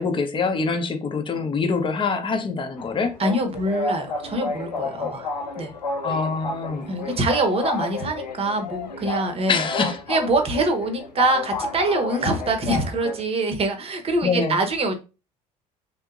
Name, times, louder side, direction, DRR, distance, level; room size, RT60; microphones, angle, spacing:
voice 1, 0.0-3.2 6.0-6.9 9.5-10.0 14.2-14.6, left 4 dB, 25° left, 0.7 m, -24 dB
sound 1, 2.8-13.2, left 3 dB, 85° left, 0.4 m, -31 dB
voice 2, 3.2-5.7 6.8-9.7 10.1-14.9, right 2 dB, 30° right, 0.9 m, -24 dB
3.4 x 2.8 x 2.4 m
figure-of-eight pair, 60°, 21 cm